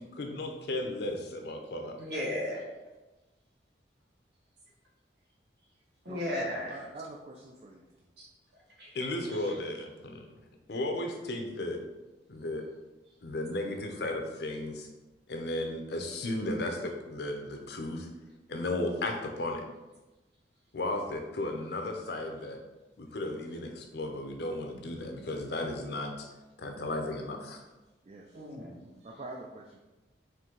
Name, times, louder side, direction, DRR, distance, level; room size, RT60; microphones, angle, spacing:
voice 1, 0.0-2.0 8.9-10.2 10.7-11.8 12.3-12.6 13.2-14.9 15.3-18.1 18.5-19.6 20.7-22.6 23.0-26.3 26.6-27.6, left 1 dB, 60° left, 3 dB, 0.6 m, -35 dB
voice 2, 2.0-2.6 6.0-6.8 8.2-8.3 8.8-8.9 9.3-9.4 28.3-28.8, left 1 dB, 60° right, -4 dB, 1.3 m, -35 dB
voice 3, 6.7-7.8 28.0-28.4 29.0-29.8, right 2 dB, 35° right, 0 dB, 0.3 m, -45 dB
4.4 x 2.7 x 3.7 m, 1.1 s
head